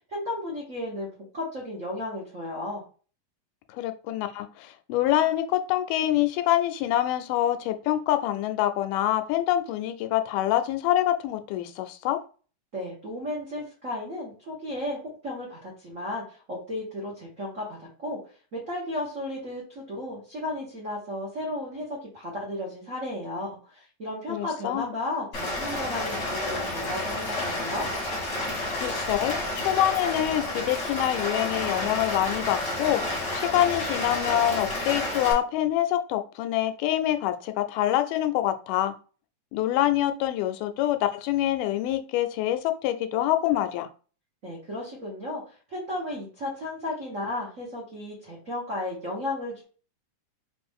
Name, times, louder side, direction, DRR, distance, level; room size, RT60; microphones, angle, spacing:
voice 1, 0.1-2.8 12.7-18.2 18.5-27.9 44.4-49.6, left 1 dB, 70° right, -5 dB, 0.7 m, -34 dB
voice 2, 3.7-12.2 24.3-25.0 28.8-33.0 33.3-38.9 39.5-43.9, left 13 dB, 90° left, 9 dB, 2.1 m, -26 dB
Rain, 25.3-35.3, left 1 dB, 50° left, 1.0 m, -30 dB
5.0 x 2.6 x 3.5 m, 0.38 s
omnidirectional pair, 3.6 m